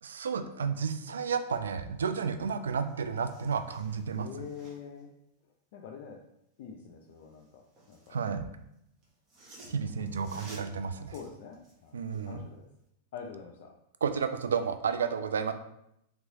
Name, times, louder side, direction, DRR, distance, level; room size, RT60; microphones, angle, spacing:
voice 1, 0.0-4.3 8.1-8.4 9.7-11.1 11.9-12.4 14.0-15.5, right 6 dB, 80° right, 9 dB, 0.3 m, -32 dB
sound 1, 2.4-2.5 2.8-5.0 7.2-8.2 9.0-12.4 12.8-12.9, right 2 dB, 35° right, 1.2 m, -55 dB
voice 2, 4.1-5.1 5.4-6.2 6.6-8.2 9.8-10.5 11.1-12.7 13.1-13.7, left 6 dB, 60° left, 1 dB, 0.4 m, -46 dB
3.2 x 3.0 x 2.7 m, 0.79 s
hypercardioid pair, 100°, 0 cm